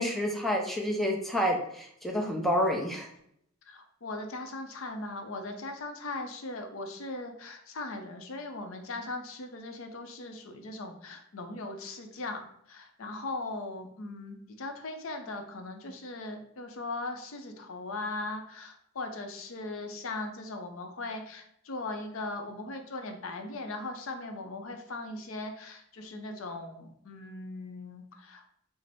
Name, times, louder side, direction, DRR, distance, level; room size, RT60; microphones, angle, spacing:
voice 1, 0.0-3.1, equal, ahead, 1 dB, 0.5 m, -29 dB
voice 2, 3.7-28.4, left 2 dB, 75° left, 5 dB, 0.6 m, -39 dB
4.8 x 2.0 x 3.4 m, 0.70 s
head